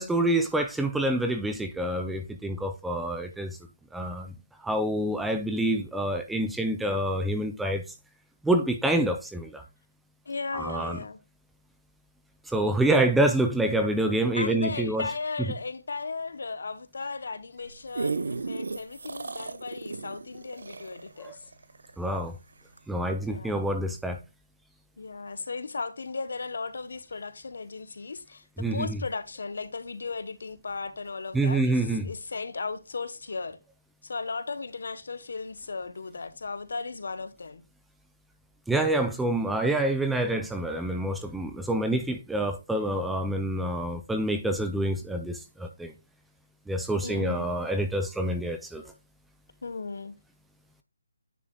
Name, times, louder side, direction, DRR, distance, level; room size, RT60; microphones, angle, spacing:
voice 1, 0.0-3.6 3.9-4.3 4.6-7.8 8.4-9.6 10.5-11.0 12.5-15.1 15.4-15.5 21.2-21.3 22.0-22.4 22.9-24.2 28.6-29.0 31.3-32.1 38.7-45.9 46.7-48.8, right 1 dB, ahead, 0.5 m, -27 dB
voice 2, 10.2-11.2 14.3-21.5 23.2-23.7 25.0-33.6 34.0-37.6 47.0-47.5 49.6-50.2, left 4 dB, 65° left, 1.1 m, -36 dB
sound 1, 17.6-22.3 22.8-22.9, right 4 dB, 75° right, 0.8 m, -34 dB
9.8 x 5.9 x 2.3 m
hypercardioid pair, 170°, 0 cm